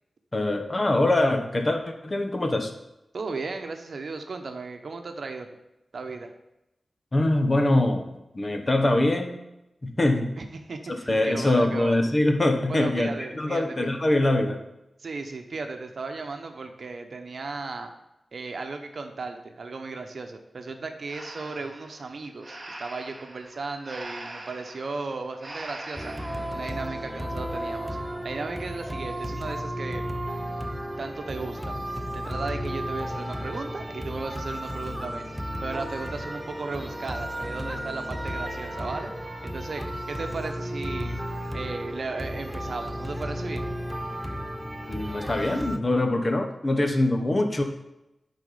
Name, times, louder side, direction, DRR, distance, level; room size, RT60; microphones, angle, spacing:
voice 1, 0.3-2.7 7.1-8.1 8.3-9.4 9.8-10.3 11.1-14.6 44.9-47.6, left 1 dB, 35° left, 5 dB, 1.0 m, -23 dB
voice 2, 3.1-5.5 5.9-6.3 10.4-12.0 12.7-13.8 15.0-17.9 18.3-26.1 26.5-28.0 28.2-30.0 31.0-31.8 32.1-35.2 35.6-39.1 39.4-41.2 41.5-43.7, right 3 dB, 65° right, 5 dB, 0.9 m, -35 dB
Breathing, 21.1-26.6, right 2 dB, 30° right, 1.1 m, -42 dB
sound 1, 26.0-45.8, equal, 10° right, 0.7 m, -33 dB
10.5 x 4.2 x 5.0 m, 0.89 s
wide cardioid pair, 90°, 0 cm